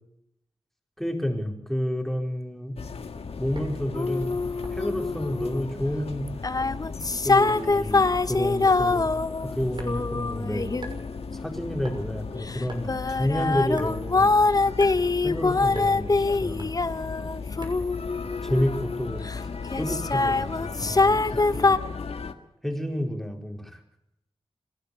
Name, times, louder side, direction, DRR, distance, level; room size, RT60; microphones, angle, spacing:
voice 1, 1.0-2.8 3.4-4.4 4.7-6.3 7.2-9.1 9.4-10.9 11.3-14.3 15.2-16.7 18.4-19.5 19.8-21.8 22.6-23.8, equal, 5° left, 3 dB, 4.4 m, -30 dB
sound 1, 2.8-22.3, left 5 dB, 75° left, 1.6 m, -36 dB
sound 2, 3.6-3.8 4.6-5.0 5.7-6.0 6.4-6.7 7.5-7.7 8.7-8.9 9.8-10.2 10.8-11.0 11.8-12.0 12.7-12.9 13.7-14.0 14.8-15.0 15.8-15.9 16.6-16.8 17.6-17.9, right 2 dB, 50° right, 6.3 m, -42 dB
sound 3, 3.9-5.6 6.3-11.9 12.5-19.4 19.7-21.8, left 3 dB, 35° left, 1.0 m, -24 dB
26.0 x 12.0 x 8.4 m, 0.83 s
cardioid pair, 55°, 10 cm